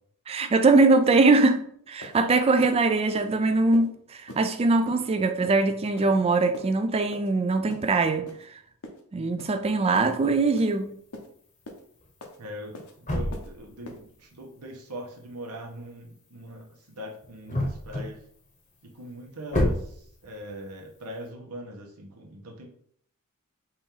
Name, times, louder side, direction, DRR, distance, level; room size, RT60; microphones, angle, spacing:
voice 1, 0.3-8.3 9.1-10.9, right 3 dB, 25° right, 0.3 m, -22 dB
sound 1, 1.5-1.6 2.0-2.2 2.6-2.7 3.1-3.3 3.7-3.9 4.3-4.4 4.8-5.0 5.4-5.6 6.0-6.2 6.5-6.7 7.1-7.3 7.7-7.9 8.3-8.4 8.8-9.0 9.4-9.6 9.9-10.1 10.6-10.7 11.1-11.3 11.6-11.8 12.2-12.4 12.7-12.9 13.3-13.5 13.8-14.0, left 1 dB, 70° left, 0.8 m, -42 dB
sound 2, 9.9-10.1 12.0-12.1 12.4-14.3 17.2-18.5 19.0-19.1 19.4-20.7, left 1 dB, 35° left, 0.9 m, -30 dB
voice 2, 12.4-18.2 18.8-22.7, equal, 85° right, 1.0 m, -41 dB
4.4 x 2.9 x 3.7 m
head